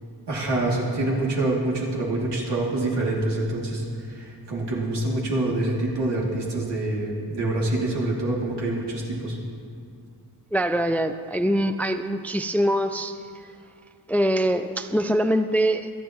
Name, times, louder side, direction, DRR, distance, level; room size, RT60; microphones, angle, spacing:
voice 1, 0.3-9.4, right 2 dB, 85° right, -5 dB, 2.9 m, -26 dB
voice 2, 10.5-13.2 14.1-15.9, equal, 5° left, 9 dB, 0.3 m, -23 dB
26.5 x 9.2 x 3.1 m, 2.3 s
wide cardioid pair, 100°, 40 cm